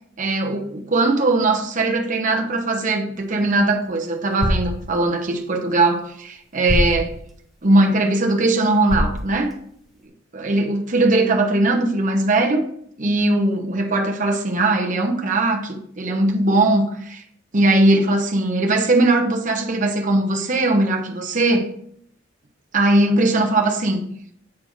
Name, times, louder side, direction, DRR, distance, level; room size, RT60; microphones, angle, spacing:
voice 1, 0.2-7.1 7.6-9.5 10.3-12.6 13.0-17.2 17.5-21.7 22.7-24.1, right 2 dB, 40° right, 2 dB, 1.0 m, -19 dB
sound 1, 3.1-10.1, equal, ahead, 1.3 m, -29 dB
8.4 x 4.3 x 4.6 m, 0.67 s
head